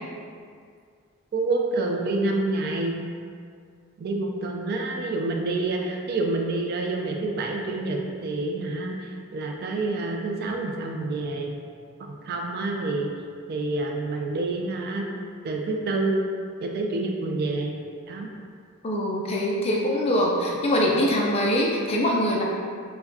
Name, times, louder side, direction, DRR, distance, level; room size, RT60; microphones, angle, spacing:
voice 1, 1.3-3.0 4.0-11.6 12.0-13.1 13.5-15.1 15.4-16.2 16.6-17.7 18.1-18.3, right 2 dB, 45° right, 1 dB, 0.3 m, -28 dB
voice 2, 18.8-22.4, equal, 30° left, -2 dB, 0.3 m, -23 dB
4.7 x 2.2 x 2.6 m, 2.1 s
head